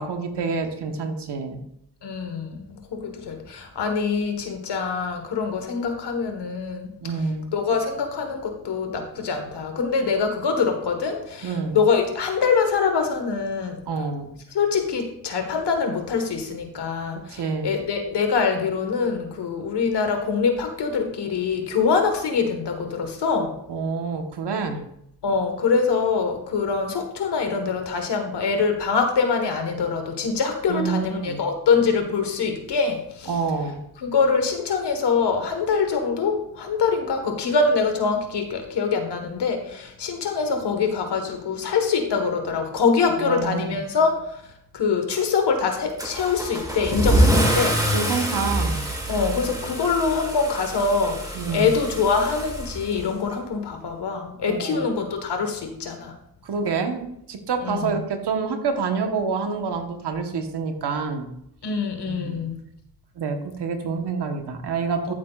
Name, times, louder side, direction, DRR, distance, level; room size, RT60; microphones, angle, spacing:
voice 1, 0.0-1.6 7.0-7.5 11.4-11.8 13.9-14.3 17.3-17.7 23.7-24.9 30.7-31.4 33.3-33.8 43.2-43.8 47.9-48.8 51.3-51.7 54.5-54.8 56.4-61.3 62.1-62.4 63.2-65.1, right 5 dB, 85° right, 5 dB, 1.3 m, -27 dB
voice 2, 2.0-6.9 7.5-13.8 14.5-23.6 25.2-33.3 34.0-44.4 44.7-47.8 49.1-56.2 57.6-58.0 61.6-62.6 65.1-65.2, left 5 dB, 85° left, 5 dB, 1.6 m, -24 dB
Car / Engine starting / Accelerating revving vroom, 46.0-53.3, right 1 dB, 10° right, 2.5 m, -25 dB
13.0 x 7.7 x 2.5 m, 0.76 s
cardioid pair, 65°, 40 cm